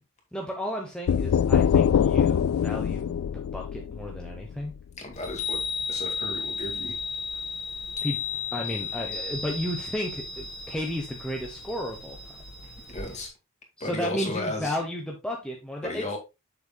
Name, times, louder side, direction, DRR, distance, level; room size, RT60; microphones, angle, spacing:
voice 1, 0.3-4.7 8.0-8.2 8.5-12.3 13.8-16.2, equal, 5° left, 1.0 m, -33 dB
sound 1, 1.1-4.8, left 8 dB, 70° left, 0.3 m, -24 dB
voice 2, 5.0-5.6 5.9-7.0 12.9-13.3 13.8-14.8 15.8-16.2, left 1 dB, 30° left, 2.2 m, -34 dB
Chime, 5.1-13.3, left 5 dB, 90° left, 2.1 m, -34 dB
7.9 x 6.7 x 2.3 m
head